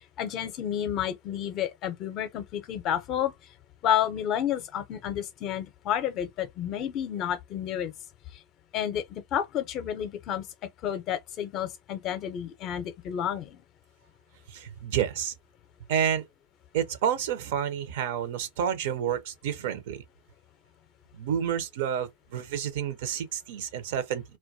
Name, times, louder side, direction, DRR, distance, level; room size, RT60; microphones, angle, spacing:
voice 1, 0.0-3.3 3.8-7.9 8.7-10.4 10.8-13.6, left 10 dB, 40° left, 0.5 m, -30 dB
voice 2, 14.5-15.3 15.9-16.2 16.7-20.0 21.1-24.2, right 9 dB, 65° right, 0.5 m, -29 dB
2.2 x 2.2 x 2.6 m
hypercardioid pair, 115°, 0 cm